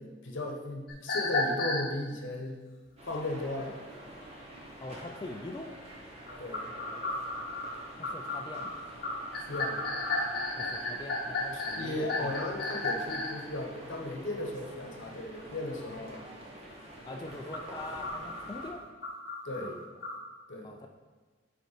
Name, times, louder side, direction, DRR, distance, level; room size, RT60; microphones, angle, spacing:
voice 1, 0.0-2.6 3.1-3.8 6.4-6.7 9.4-9.8 11.5-16.2 19.4-19.7 20.5-20.8, left 1 dB, 85° left, 1 dB, 0.9 m, -36 dB
sound 1, 0.9-1.9 6.3-13.4 17.3-20.2, left 2 dB, 55° left, 0.8 m, -33 dB
sound 2, 3.0-18.7, right 1 dB, 35° right, 1.1 m, -48 dB
voice 2, 4.8-5.8 8.0-8.7 10.6-12.3 17.0-18.8 19.6-19.8 20.6-20.9, left 2 dB, 25° left, 3 dB, 0.3 m, -42 dB
5.3 x 4.3 x 5.0 m, 1.4 s
head